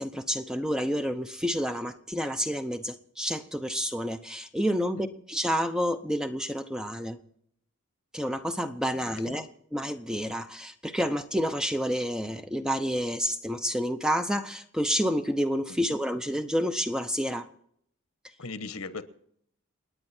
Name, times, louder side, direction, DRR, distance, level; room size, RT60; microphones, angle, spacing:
voice 1, 0.0-7.2 8.1-17.5, equal, 5° right, 8 dB, 0.7 m, -29 dB
voice 2, 8.9-9.5 18.4-19.0, left 3 dB, 80° left, 12 dB, 1.3 m, -39 dB
29.0 x 9.6 x 4.4 m, 0.67 s
head